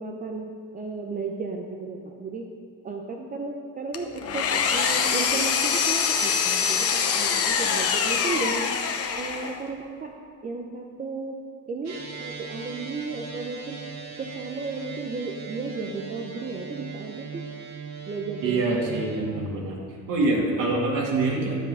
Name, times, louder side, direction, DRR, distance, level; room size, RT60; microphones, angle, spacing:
voice 1, 0.0-2.5 2.8-8.7 9.2-10.1 10.4-11.4 11.7-13.8 14.2-17.5 18.1-18.9 20.6-20.7, right 4 dB, 25° right, 2 dB, 0.7 m, -34 dB
Engine, 3.9-9.7, left 6 dB, 50° left, 0.9 m, -24 dB
sound 1, 11.8-19.3, right 5 dB, 55° right, 1.8 m, -39 dB
voice 2, 18.4-19.8 20.1-21.6, right 2 dB, 90° right, -3 dB, 2.4 m, -25 dB
12.0 x 7.9 x 5.6 m, 2.2 s
cardioid pair, 170°, 31 cm